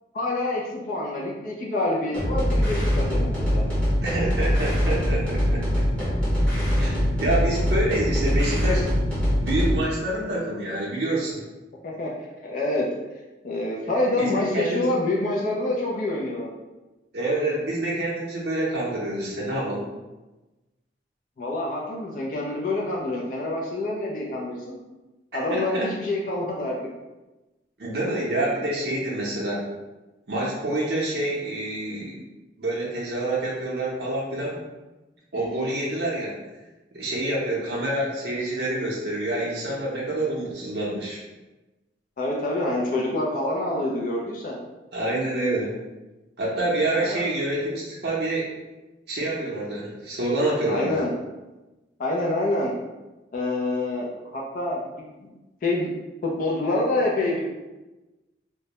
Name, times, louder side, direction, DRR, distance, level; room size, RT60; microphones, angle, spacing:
voice 1, 0.1-3.6 11.8-12.1 12.4-12.9 13.4-16.5 21.4-24.8 25.3-26.8 35.3-35.8 42.2-44.6 47.0-47.3 50.7-51.1 52.0-52.7 53.3-55.3 55.6-55.9 56.2-57.4, left 2 dB, 45° left, -2 dB, 0.3 m, -27 dB
sound 1, 2.1-9.8, equal, 5° left, 0.7 m, -23 dB
voice 2, 4.0-5.6 6.8-8.9 9.4-11.4 14.2-15.0 17.1-19.8 25.5-25.9 27.8-29.7 30.3-32.1 32.6-34.6 35.3-36.3 36.9-41.2 44.9-45.7 46.4-48.5 49.1-51.0, right 1 dB, 65° right, -5 dB, 0.5 m, -27 dB
2.2 x 2.0 x 2.8 m, 1.1 s
head